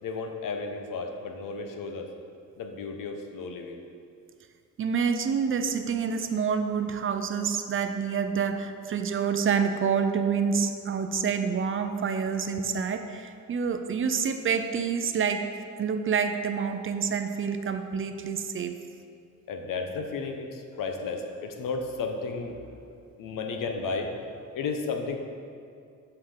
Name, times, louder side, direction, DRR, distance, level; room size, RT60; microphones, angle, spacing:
voice 1, 0.0-2.1 2.6-3.8 19.5-22.9 23.2-24.1 24.5-25.2, left 4 dB, 75° left, 4 dB, 0.9 m, -33 dB
voice 2, 4.8-15.5 15.8-18.8 19.8-19.9, right 6 dB, 40° right, 7 dB, 0.5 m, -27 dB
5.8 x 5.7 x 6.6 m, 2.4 s
cardioid pair, 150°, 33 cm